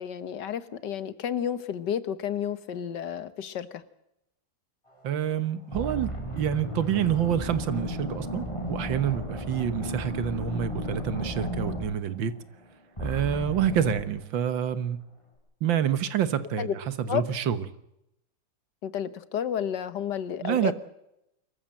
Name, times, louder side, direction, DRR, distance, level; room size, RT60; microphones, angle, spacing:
voice 1, 0.0-3.8 16.6-16.7 17.1-17.2 18.8-20.7, left 9 dB, 65° left, 14 dB, 1.7 m, -31 dB
voice 2, 5.0-12.3 13.0-15.0 15.6-17.6 20.4-20.7, right 9 dB, 85° right, 13 dB, 1.9 m, -27 dB
sound 1, 5.1-5.3 5.7-12.6 13.0-14.1, equal, 15° left, 6.0 m, -34 dB
25.0 x 14.5 x 7.7 m, 0.84 s
omnidirectional pair, 2.0 m